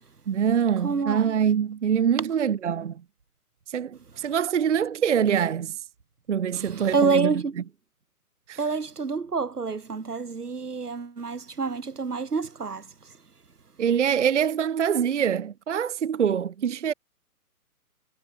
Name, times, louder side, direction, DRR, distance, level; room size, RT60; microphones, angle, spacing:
voice 1, 0.3-3.0 3.7-5.9 6.3-7.3 8.5-8.6 13.8-16.9, right 8 dB, 50° right, 0.7 m, -24 dB
voice 2, 0.8-1.2 6.5-7.6 8.6-13.1, right 4 dB, 80° right, 1.7 m, -28 dB
figure-of-eight pair, 140°, 46 cm